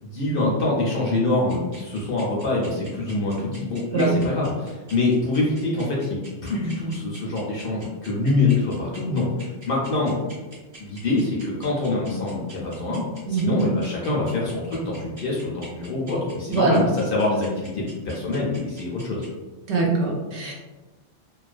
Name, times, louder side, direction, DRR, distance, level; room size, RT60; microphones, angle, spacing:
voice 1, 0.0-6.2 6.4-9.3 9.7-10.1 10.8-13.0 13.3-19.2, left 2 dB, 60° left, -4 dB, 0.6 m, -25 dB
sound 1, 1.5-19.3, right 1 dB, 35° right, 0.8 m, -45 dB
voice 2, 13.3-13.6 16.5-16.8 19.7-20.5, right 3 dB, 70° right, -2 dB, 0.9 m, -22 dB
2.3 x 2.2 x 2.4 m, 1.2 s
omnidirectional pair, 1.2 m